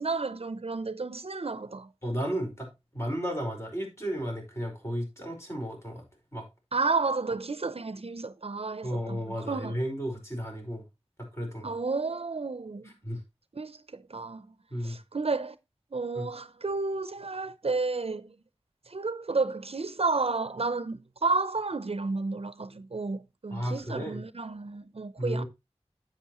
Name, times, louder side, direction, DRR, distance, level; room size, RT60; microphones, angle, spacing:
voice 1, 0.0-1.9 6.7-9.8 11.6-12.9 13.5-14.5 14.8-15.6 15.9-18.3 18.9-25.4, right 3 dB, 65° right, 0.6 m, -31 dB
voice 2, 2.0-6.0 6.3-6.5 8.8-10.8 11.2-11.7 12.8-13.2 14.7-15.0 16.1-16.3 23.5-24.2 25.2-25.5, equal, 25° left, 5.0 m, -33 dB
10.5 x 7.9 x 3.0 m
wide cardioid pair, 45°, 11 cm